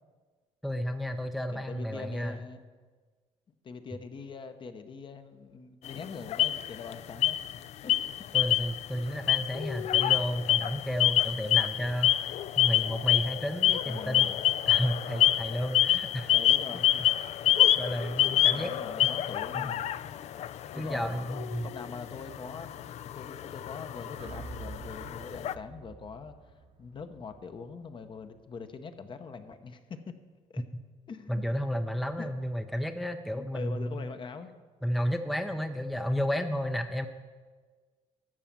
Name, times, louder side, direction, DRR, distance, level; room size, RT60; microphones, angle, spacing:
voice 1, 0.6-2.4 8.3-14.3 14.7-16.3 17.8-18.7 19.5-19.7 20.7-21.7 31.3-34.1 34.8-37.1, equal, ahead, 7 dB, 0.5 m, -32 dB
voice 2, 1.5-2.6 3.6-7.4 7.8-7.9 13.8-14.5 16.2-17.2 18.2-19.9 20.7-21.3 21.6-30.2 30.5-30.6 31.1-31.4 32.2-32.3 33.4-34.5, left 5 dB, 40° left, 9 dB, 0.8 m, -43 dB
sound 1, 5.9-6.9 7.2-7.6 7.9-8.9 9.2-25.5, left 12 dB, 60° left, 0.4 m, -27 dB
sound 2, 24.2-28.4, right 5 dB, 50° right, 1.0 m, -48 dB
12.5 x 5.7 x 7.4 m, 1.4 s
cardioid pair, 110°, 13 cm